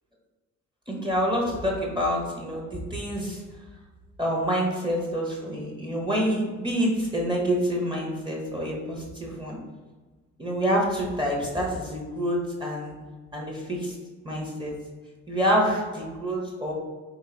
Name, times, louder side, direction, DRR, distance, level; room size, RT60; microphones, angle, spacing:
voice 1, 0.9-3.4 4.2-9.6 10.4-12.9 13.3-13.9 14.2-14.7 15.3-16.7, equal, 15° right, -2 dB, 1.1 m, -27 dB
3.8 x 3.1 x 3.9 m, 1.3 s
cardioid pair, 90°, 30 cm